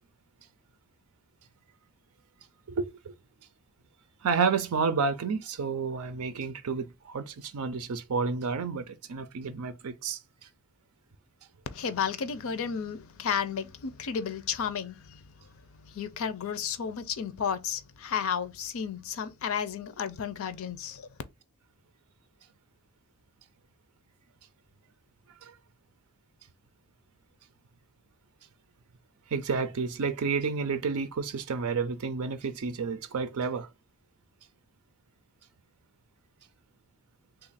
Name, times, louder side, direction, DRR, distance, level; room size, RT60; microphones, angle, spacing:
voice 1, 2.7-3.1 4.2-10.2 25.4-25.5 29.3-33.7, right 5 dB, 80° right, 0.5 m, -30 dB
voice 2, 11.7-15.2 15.9-21.1, left 7 dB, 65° left, 0.5 m, -32 dB
3.2 x 2.4 x 4.0 m
head